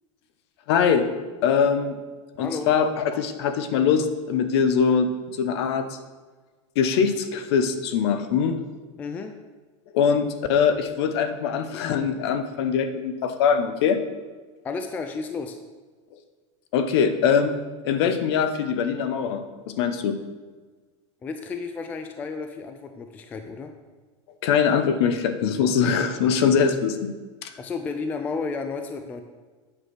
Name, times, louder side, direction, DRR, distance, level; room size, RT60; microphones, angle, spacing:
voice 1, 0.7-1.1 1.4-2.0 2.4-5.9 6.8-8.6 9.9-14.0 16.7-20.2 24.4-27.1 27.4-27.5, left 6 dB, 55° left, 9 dB, 0.8 m, -22 dB
voice 2, 2.4-2.7 9.0-9.3 14.6-15.6 21.2-23.7 27.6-29.2, left 4 dB, 10° left, 7 dB, 0.3 m, -32 dB
8.9 x 6.3 x 4.7 m, 1.4 s
supercardioid pair, 165°, 16 cm